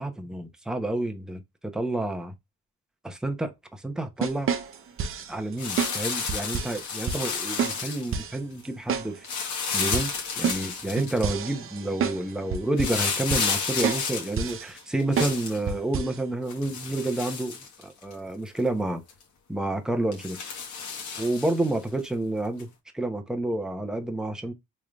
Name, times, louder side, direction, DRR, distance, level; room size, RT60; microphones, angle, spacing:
voice 1, 0.0-1.4 1.7-2.3 3.0-4.5 5.3-9.2 9.7-19.0 19.5-20.4 21.2-22.7 22.9-24.5, right 1 dB, ahead, 0.7 m, -29 dB
sound 1, 4.2-5.3 5.8-6.0 6.3-6.8 7.1-7.2 7.6-7.8 8.1-8.4 8.9-9.1 9.4-9.5 9.9-12.2 12.5-13.0 13.3-13.6 13.8-14.1 14.4-14.7 15.2-15.4 15.7-16.2, right 7 dB, 45° right, 0.6 m, -29 dB
sound 2, 5.6-8.2 9.2-11.3 12.8-15.6 16.5-18.1 18.6-18.7 19.1-19.2 20.1-21.7 22.6-22.7, left 5 dB, 70° left, 1.2 m, -31 dB
3.7 x 3.2 x 2.3 m
cardioid pair, 90°, 30 cm